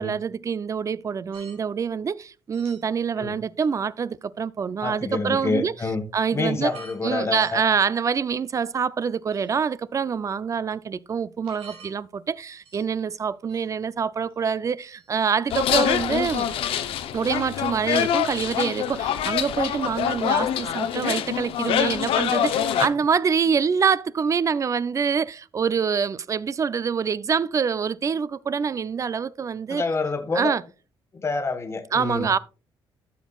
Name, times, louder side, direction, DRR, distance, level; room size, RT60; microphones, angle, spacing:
voice 1, 0.0-5.7 6.1-6.7 7.0-16.5 17.1-29.8 30.3-30.6 31.9-32.4, right 6 dB, 35° right, 0.4 m, -25 dB
sound 1, 1.3-1.6 2.5-3.0 3.6-3.7 4.8-5.0 5.9-6.0 6.4-7.0 7.3-7.6 8.1-8.6 9.3-9.7 11.4-11.9 12.6-13.0 13.5-13.7 14.3-14.5 14.8-15.3, right 5 dB, 85° right, 2.3 m, -48 dB
voice 2, 4.8-6.0 6.3-7.6 29.7-30.5 31.1-32.3, left 3 dB, 30° left, 1.2 m, -27 dB
sound 2, 15.5-22.9, left 10 dB, 80° left, 0.7 m, -25 dB
12.0 x 7.2 x 2.3 m
cardioid pair, 95°, 9 cm